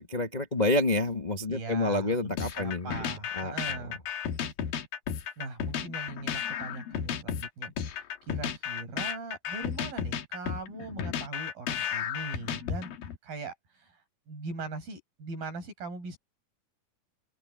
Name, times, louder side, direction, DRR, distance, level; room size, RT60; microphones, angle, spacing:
voice 1, 0.0-3.0 3.3-3.9, left 2 dB, 40° left, 0.6 m, -29 dB
voice 2, 1.5-4.0 5.4-12.9 13.2-16.2, right 3 dB, 75° right, 9.9 m, -40 dB
sound 1, 2.4-13.2, left 8 dB, 75° left, 3.3 m, -33 dB
open air
omnidirectional pair, 4.2 m